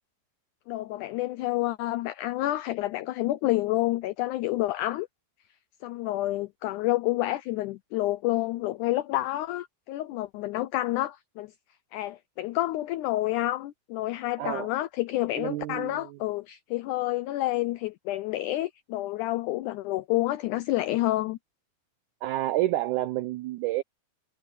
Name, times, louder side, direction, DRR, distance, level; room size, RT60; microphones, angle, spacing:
voice 1, 0.7-5.1 5.8-11.5 11.9-21.4, left 16 dB, 90° left, 1.7 m, -29 dB
voice 2, 14.4-14.7 15.4-16.2 22.2-23.8, right 15 dB, 90° right, 1.7 m, -29 dB
omnidirectional pair, 4.2 m